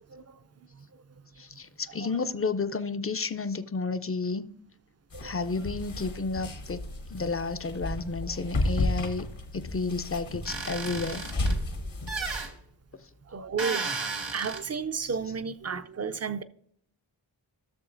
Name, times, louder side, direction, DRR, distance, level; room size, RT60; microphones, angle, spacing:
voice 1, 0.1-0.4 0.7-1.0 5.1-5.7 12.2-12.3 13.3-14.1 14.3-16.4, right 5 dB, 35° right, 0.4 m, -33 dB
voice 2, 1.4-4.5 5.2-6.8 7.1-9.3 9.5-11.3, left 4 dB, 30° left, 0.4 m, -31 dB
sound 1, 5.1-12.4, left 1 dB, 70° left, 1.1 m, -33 dB
sound 2, 10.5-11.6 12.1-12.5 13.6-14.6, right 4 dB, 70° right, 1.4 m, -33 dB
14.0 x 6.7 x 2.5 m
wide cardioid pair, 50°, 47 cm